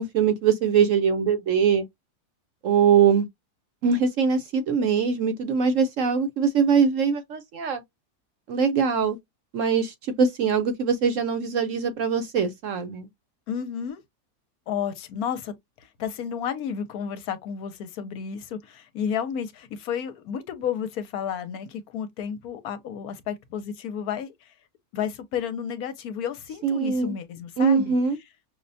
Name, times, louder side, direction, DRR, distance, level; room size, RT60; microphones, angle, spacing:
voice 1, 0.0-1.8 2.6-3.3 3.8-7.8 8.5-9.2 9.5-13.1 26.6-27.1 27.6-28.2, right 6 dB, 65° right, 0.9 m, -22 dB
voice 2, 13.5-14.0 14.7-24.5 24.9-28.0, left 8 dB, 75° left, 1.1 m, -32 dB
5.3 x 2.1 x 2.6 m
omnidirectional pair, 1.7 m